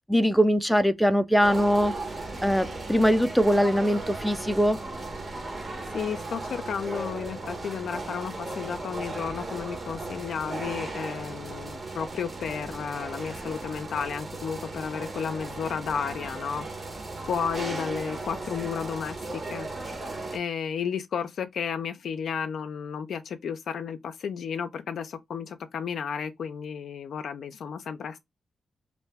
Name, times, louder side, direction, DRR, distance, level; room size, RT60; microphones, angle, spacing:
voice 1, 0.1-1.9 2.4-4.8, equal, ahead, 0.4 m, -22 dB
sound 1, 1.4-20.4, right 2 dB, 40° right, 1.1 m, -36 dB
voice 2, 5.9-16.7 17.3-19.7 20.3-28.2, left 7 dB, 75° left, 0.3 m, -33 dB
2.5 x 2.2 x 3.3 m
cardioid pair, 70°, 0 cm